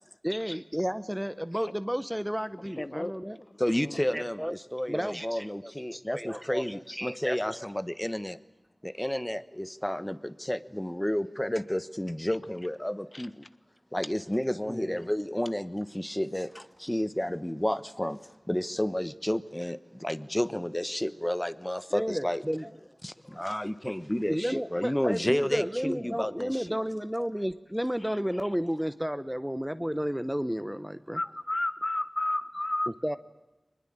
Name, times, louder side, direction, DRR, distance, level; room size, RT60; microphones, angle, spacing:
voice 1, 0.2-3.4 4.1-4.5 4.9-7.6 14.7-15.0 21.9-22.7 24.3-31.2 33.0-33.2, equal, 5° right, 13 dB, 0.8 m, -32 dB
voice 2, 2.6-4.2 13.1-13.3 23.2-23.4 28.0-28.5 31.1-32.9, left 1 dB, 35° left, 13 dB, 1.2 m, -34 dB
voice 3, 3.6-8.4 8.8-13.4 13.9-18.2 18.5-22.4 23.0-26.8, left 1 dB, 15° left, 14 dB, 1.2 m, -31 dB
23.5 x 20.5 x 8.8 m, 1.0 s
wide cardioid pair, 50°, 0 cm